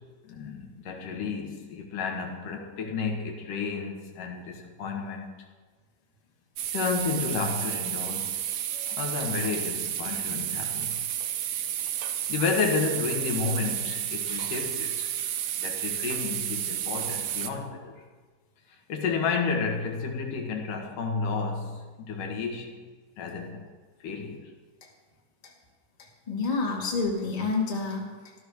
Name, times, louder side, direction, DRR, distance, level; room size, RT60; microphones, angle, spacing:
voice 1, 0.2-5.3 6.7-8.6 8.9-11.1 12.3-15.1 15.6-18.0 18.9-22.7 23.2-23.7 24.0-24.5, left 5 dB, 70° left, 2 dB, 3.3 m, -31 dB
sound 1, 6.6-17.5, right 11 dB, 75° right, 1.5 m, -31 dB
voice 2, 26.0-28.3, left 4 dB, 20° left, -2 dB, 1.2 m, -30 dB
14.5 x 13.0 x 6.4 m, 1.4 s
omnidirectional pair, 4.0 m